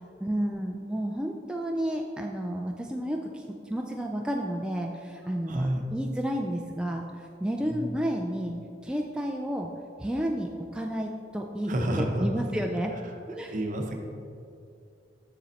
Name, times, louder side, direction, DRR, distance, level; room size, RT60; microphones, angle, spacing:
voice 1, 0.2-8.6 8.8-9.7 10.0-11.7 12.0-12.9 13.3-13.5, equal, 5° right, 1 dB, 0.3 m, -31 dB
voice 2, 5.5-5.8 7.7-7.9 11.7-12.4 13.5-14.0, right 1 dB, 45° right, 3 dB, 0.8 m, -29 dB
6.9 x 6.2 x 4.1 m, 2.5 s
head